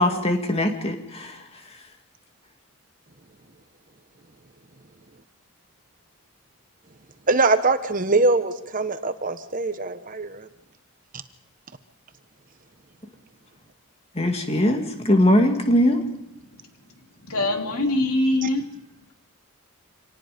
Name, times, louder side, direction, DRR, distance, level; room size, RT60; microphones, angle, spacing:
voice 1, 0.0-1.8 14.1-16.0, left 1 dB, 25° left, 4 dB, 2.3 m, -21 dB
voice 2, 7.3-10.5 18.4-18.5, right 3 dB, 35° right, 10 dB, 1.1 m, -22 dB
voice 3, 17.2-18.7, left 1 dB, 80° left, 4 dB, 2.7 m, -23 dB
26.5 x 18.5 x 5.2 m, 0.81 s
head